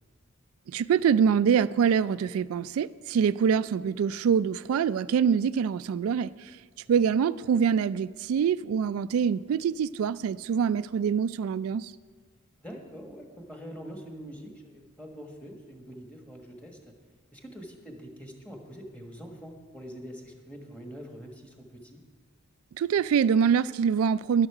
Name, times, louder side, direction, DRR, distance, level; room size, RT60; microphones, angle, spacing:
voice 1, 0.7-6.3 6.9-11.9 22.8-24.5, right 7 dB, 80° right, 15 dB, 0.3 m, -25 dB
voice 2, 12.6-16.8 17.3-22.0, equal, 5° left, 2 dB, 1.5 m, -44 dB
12.5 x 11.0 x 4.9 m, 1.5 s
head